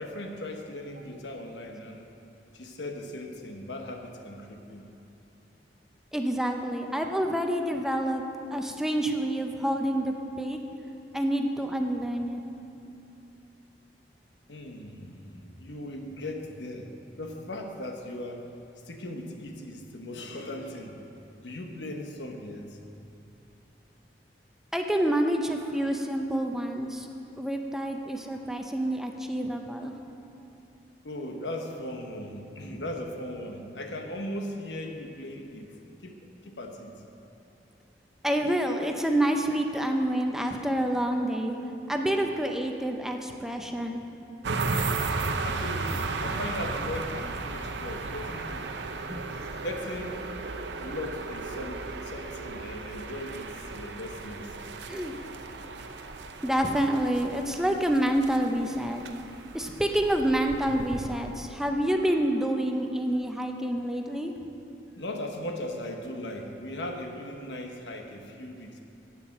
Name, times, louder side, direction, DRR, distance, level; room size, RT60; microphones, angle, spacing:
voice 1, 0.0-2.0 2.5-4.9 9.0-9.2 14.5-16.9 17.2-18.5 18.9-21.0 21.4-22.8 31.0-35.7 36.0-36.2 36.4-36.9 45.4-48.7 49.3-50.3 50.8-54.7 65.0-68.8, left 1 dB, 85° left, 3 dB, 1.2 m, -38 dB
voice 2, 6.1-8.2 8.5-10.6 11.1-12.4 24.7-27.1 27.4-30.0 32.7-32.8 38.2-41.6 41.9-44.0 49.1-49.2 54.9-55.2 56.4-59.0 59.5-64.3, right 1 dB, 5° right, 3 dB, 0.6 m, -28 dB
sound 1, 44.4-61.7, right 3 dB, 80° right, 0.7 m, -35 dB
11.5 x 8.9 x 6.0 m, 2.7 s
head